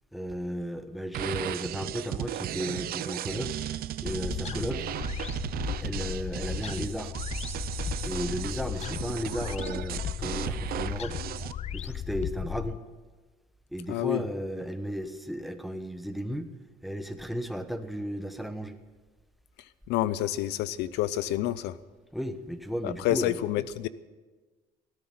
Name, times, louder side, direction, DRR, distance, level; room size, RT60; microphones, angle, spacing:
voice 1, 0.1-3.5 4.0-4.9 5.8-7.1 8.0-11.2 11.7-12.8 13.7-16.5 16.8-18.8 22.1-23.4, equal, ahead, 9 dB, 1.2 m, -34 dB
sound 1, 1.1-11.5, right 12 dB, 60° right, 0.6 m, -35 dB
sound 2, 4.0-12.8, left 9 dB, 40° left, 0.5 m, -36 dB
voice 2, 13.9-14.2 19.9-21.8 22.8-23.9, left 14 dB, 90° left, 17 dB, 0.7 m, -28 dB
16.5 x 9.8 x 7.9 m, 1.3 s
cardioid pair, 110°, 17 cm